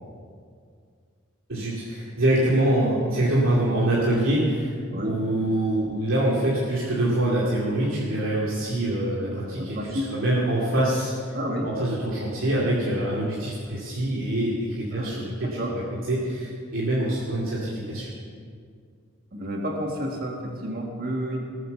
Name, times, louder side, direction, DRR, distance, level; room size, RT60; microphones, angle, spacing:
voice 1, 1.5-4.7 5.0-11.4 11.6-15.8 16.1-18.1, right 1 dB, 85° right, -7 dB, 2.6 m, -25 dB
voice 2, 9.6-10.1 11.3-11.7 14.9-15.8 19.3-21.4, equal, 50° right, 0 dB, 1.7 m, -31 dB
19.0 x 8.0 x 7.0 m, 2.2 s
head